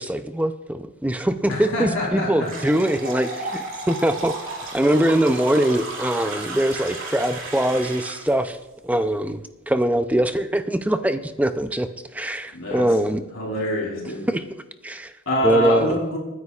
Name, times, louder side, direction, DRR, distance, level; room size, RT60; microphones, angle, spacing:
voice 1, 0.0-4.3 4.7-8.6 8.8-13.2 14.3-14.4 14.8-15.1 15.4-15.9, right 1 dB, 5° right, 9 dB, 0.4 m, -22 dB
voice 2, 1.5-2.5 12.5-12.9 13.3-14.3 15.3-16.2, left 1 dB, 70° left, -2 dB, 3.6 m, -25 dB
sound 1, 2.4-8.3, right 2 dB, 65° right, 2.4 m, -33 dB
28.5 x 9.7 x 2.4 m, 1.0 s
head